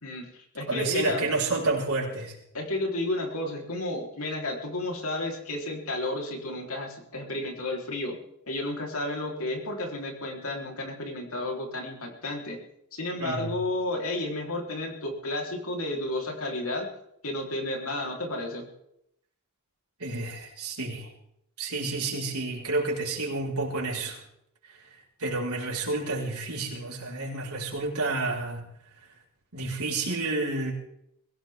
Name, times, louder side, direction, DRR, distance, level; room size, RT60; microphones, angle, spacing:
voice 1, 0.0-1.3 2.5-8.2 8.5-12.6 12.9-16.9 17.2-18.7, left 1 dB, 70° left, 1 dB, 3.9 m, -32 dB
voice 2, 0.7-2.4 13.2-13.6 20.0-21.1 21.6-24.2 24.7-24.8 25.2-28.6 29.5-30.7, right 3 dB, 90° right, -2 dB, 4.9 m, -30 dB
22.5 x 16.5 x 3.7 m, 0.76 s
head